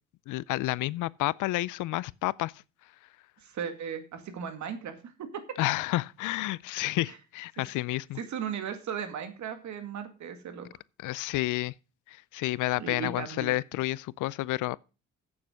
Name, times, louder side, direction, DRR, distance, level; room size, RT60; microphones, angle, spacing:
voice 1, 0.3-2.5 5.6-8.2 11.0-11.7 12.1-14.8, left 18 dB, 80° left, 0.5 m, -30 dB
voice 2, 3.4-5.6 7.1-7.2 7.6-7.7 7.9-10.8 12.8-13.6, right 7 dB, 70° right, 2.1 m, -37 dB
8.3 x 7.2 x 6.3 m
cardioid pair, 90°, 30 cm